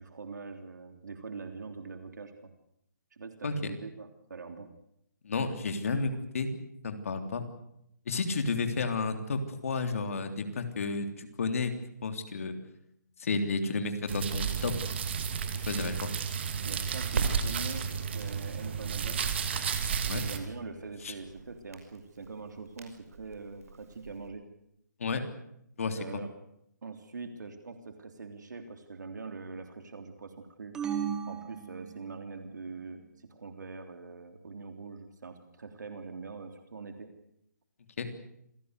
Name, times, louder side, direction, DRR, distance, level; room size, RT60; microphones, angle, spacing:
voice 1, 0.0-2.5 3.1-4.7 8.4-8.6 16.6-19.3 20.0-24.4 26.0-26.3 26.8-30.8 31.3-33.0 33.3-37.1, right 4 dB, 70° right, 6 dB, 3.4 m, -43 dB
voice 2, 5.2-6.5 6.8-7.5 8.1-11.7 12.0-12.6 13.2-14.7 15.7-16.1 20.1-20.2 21.0-21.1 25.0-25.2 25.8-26.2 38.0-38.1, left 4 dB, 50° left, 7 dB, 3.3 m, -31 dB
sound 1, 14.1-20.4, right 7 dB, 35° right, 2.4 m, -32 dB
Crackle, 17.0-24.3, right 4 dB, 50° right, 5.7 m, -41 dB
sound 2, 30.7-32.4, right 8 dB, 5° right, 1.1 m, -36 dB
26.5 x 17.5 x 8.2 m, 0.76 s
hypercardioid pair, 175°, 10 cm